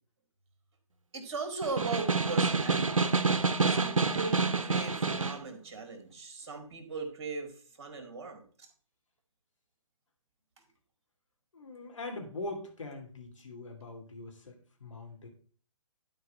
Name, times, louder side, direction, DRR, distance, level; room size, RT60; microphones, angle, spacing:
voice 1, 1.1-3.2 3.7-7.5 7.8-8.4, right 4 dB, 55° right, 6 dB, 2.1 m, -38 dB
Snare drum, 1.6-5.5, right 4 dB, 85° right, 0.7 m, -28 dB
voice 2, 11.5-15.3, left 2 dB, 70° left, 2 dB, 3.0 m, -42 dB
11.0 x 4.7 x 4.2 m, 0.44 s
figure-of-eight pair, 135°, 17 cm